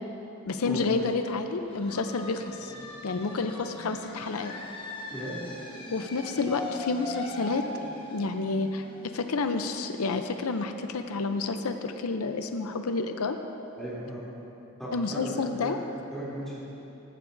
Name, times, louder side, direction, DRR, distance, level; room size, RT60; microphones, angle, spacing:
voice 1, 0.5-2.7 3.0-4.5 5.9-7.8 8.1-13.4 14.9-15.8, left 3 dB, 85° left, 7 dB, 0.6 m, -30 dB
sound 1, 1.6-11.1, left 1 dB, 25° left, 1.4 m, -41 dB
voice 2, 5.1-5.5 13.7-14.2 14.8-15.8 16.1-16.6, right 1 dB, ahead, -10 dB, 2.9 m, -36 dB
14.0 x 13.0 x 2.6 m, 3.0 s
head